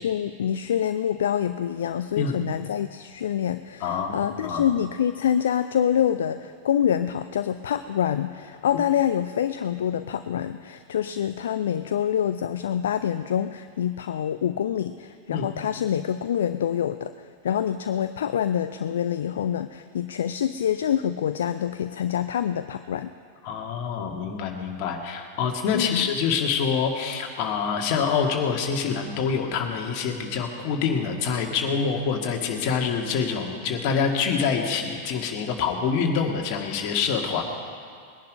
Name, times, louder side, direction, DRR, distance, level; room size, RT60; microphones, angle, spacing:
voice 1, 0.0-23.1 25.7-26.1, left 9 dB, 60° left, 11 dB, 0.4 m, -26 dB
voice 2, 2.2-2.5 3.8-4.7 15.3-15.4 23.4-37.4, left 6 dB, 45° left, 2 dB, 1.9 m, -26 dB
20.0 x 10.5 x 5.4 m, 2.2 s
figure-of-eight pair, 90°, 0 cm